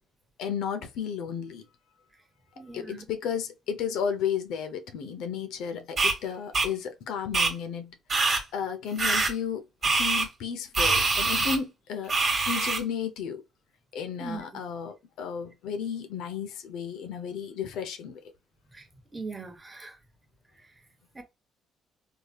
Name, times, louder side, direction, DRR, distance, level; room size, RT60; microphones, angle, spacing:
voice 1, 0.4-1.6 2.7-7.9 8.5-12.1 12.5-13.4 13.9-18.2, left 7 dB, 75° left, 0.5 m, -33 dB
voice 2, 2.6-3.1 14.2-14.4 18.7-18.9 19.1-20.0 21.1-21.2, right 3 dB, 20° right, 0.9 m, -39 dB
sound 1, 6.0-6.1 6.5-6.7 7.3-7.5 8.1-8.4 9.0-9.3 9.8-10.3 10.7-11.6 12.1-12.8, right 3 dB, 40° right, 1.3 m, -24 dB
3.2 x 2.7 x 2.2 m
supercardioid pair, 65°, 0 cm